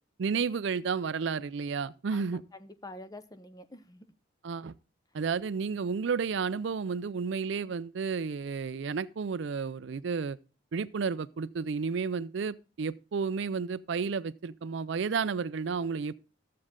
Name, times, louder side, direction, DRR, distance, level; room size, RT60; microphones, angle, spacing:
voice 1, 0.2-2.4 4.4-4.8 5.1-10.4 10.7-16.1, right 5 dB, 65° right, 0.4 m, -32 dB
voice 2, 2.1-4.1, left 1 dB, 20° left, 0.7 m, -47 dB
13.0 x 7.5 x 3.7 m
head